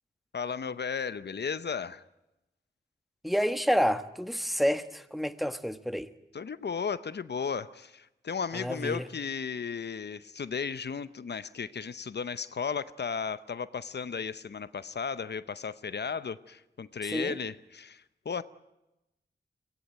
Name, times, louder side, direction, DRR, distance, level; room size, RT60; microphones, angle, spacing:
voice 1, 0.3-2.0 6.3-18.4, left 6 dB, 70° left, 0.8 m, -35 dB
voice 2, 3.2-6.1 8.5-9.0 17.1-17.4, equal, ahead, 1.3 m, -29 dB
23.0 x 17.5 x 9.0 m
cardioid pair, 55°, 18 cm